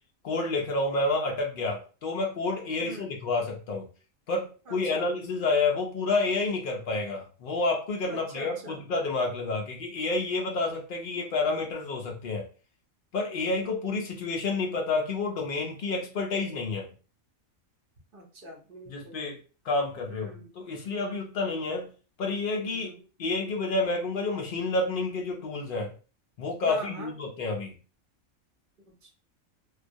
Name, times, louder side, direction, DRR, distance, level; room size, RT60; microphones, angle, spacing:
voice 1, 0.2-3.9 4.3-12.4 13.1-16.9 18.9-19.4 19.6-21.9 22.2-22.9 23.2-25.9 26.4-27.8, left 3 dB, 85° left, 0 dB, 0.4 m, -29 dB
voice 2, 4.7-5.1 8.1-8.8 18.1-19.2 20.0-20.5 22.6-23.0 26.7-27.1 28.9-29.1, right 2 dB, 55° right, 0 dB, 0.6 m, -44 dB
2.3 x 2.2 x 2.5 m, 0.36 s
omnidirectional pair, 1.4 m